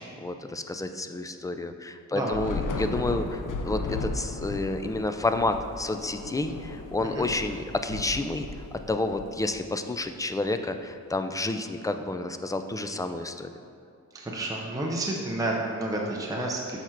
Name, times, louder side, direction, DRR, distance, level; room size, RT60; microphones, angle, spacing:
voice 1, 0.0-8.5 8.9-13.5, left 2 dB, 10° left, 8 dB, 0.3 m, -30 dB
voice 2, 2.1-2.4 7.0-7.3 14.1-16.8, right 1 dB, 10° right, -2 dB, 0.7 m, -30 dB
Thunder / Rain, 2.3-9.8, left 3 dB, 90° left, 0.7 m, -35 dB
6.9 x 5.7 x 4.5 m, 2.4 s
wide cardioid pair, 130°, 31 cm